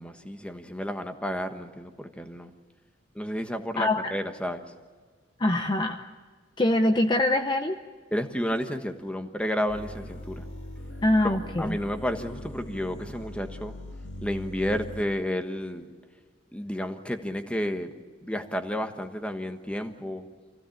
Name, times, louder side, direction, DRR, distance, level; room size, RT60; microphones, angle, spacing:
voice 1, 0.0-2.5 3.1-4.6 8.1-10.4 11.2-13.7 14.2-15.9 16.5-17.9 18.2-20.2, equal, 5° left, 7 dB, 1.3 m, -31 dB
voice 2, 3.8-4.1 5.4-6.0 6.6-7.8 11.0-11.8, left 1 dB, 25° left, 6 dB, 0.8 m, -24 dB
sound 1, 9.7-15.0, equal, 75° left, 1.9 m, -40 dB
25.0 x 16.5 x 8.6 m, 1.5 s
head